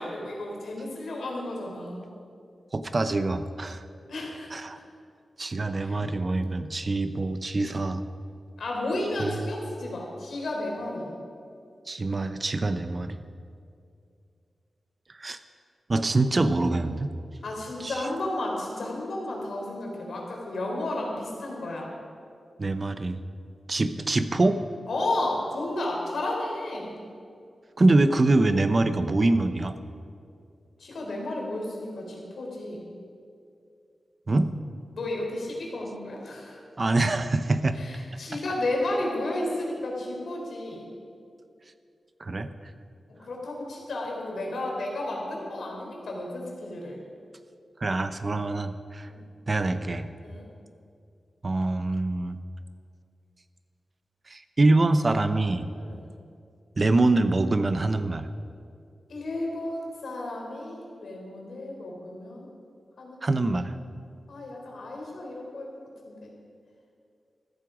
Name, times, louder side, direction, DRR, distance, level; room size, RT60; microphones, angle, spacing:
voice 1, 0.0-2.1 4.1-4.6 5.7-6.1 8.6-11.1 17.4-21.9 24.9-27.0 30.8-32.8 34.9-36.6 37.7-40.9 43.1-47.0 49.1-49.2 50.2-50.5 55.8-56.0 59.1-62.5 63.0-63.3 64.3-65.7 66.1-66.3, left 1 dB, 75° left, -1 dB, 3.8 m, -33 dB
voice 2, 2.7-3.8 4.5-4.8 5.4-8.0 9.2-9.5 11.9-13.2 15.2-15.4 15.9-17.1 17.8-18.1 22.6-23.2 23.7-24.6 27.8-29.8 34.3-34.5 36.8-37.8 42.2-42.5 47.8-49.1 49.5-50.1 51.4-52.4 54.3-55.7 56.8-58.3 63.2-63.8, right 2 dB, 35° right, 11 dB, 0.8 m, -24 dB
14.5 x 14.0 x 5.0 m, 2.4 s
wide cardioid pair, 105°, 0 cm